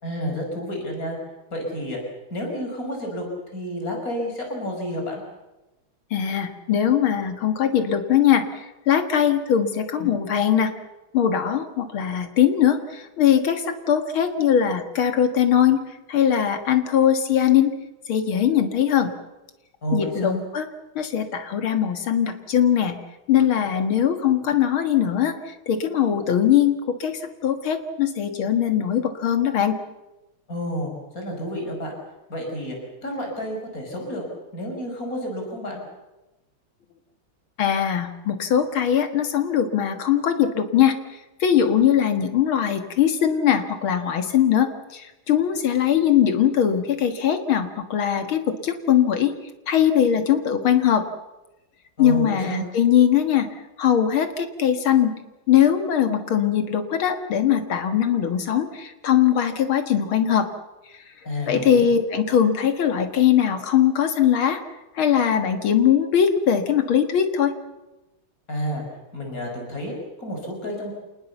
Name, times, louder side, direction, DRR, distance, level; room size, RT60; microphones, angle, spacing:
voice 1, 0.0-1.2 1.5-2.0 2.3-3.3 3.5-5.2 19.8-20.4 30.5-31.9 32.3-32.8 33.0-34.2 34.5-35.8 52.0-52.6 61.2-61.9 68.5-68.8 69.1-70.9, equal, 40° left, 2 dB, 6.0 m, -30 dB
voice 2, 6.1-8.5 8.9-10.7 11.1-15.8 16.1-17.7 18.1-19.1 19.9-20.7 21.0-23.0 23.3-25.3 25.7-29.8 37.6-40.9 41.4-49.3 49.7-51.0 52.0-53.5 53.8-55.1 55.5-60.5 61.5-64.6 65.0-67.5, left 9 dB, 80° left, 8 dB, 2.5 m, -21 dB
26.5 x 19.5 x 7.1 m, 1.0 s
omnidirectional pair, 2.2 m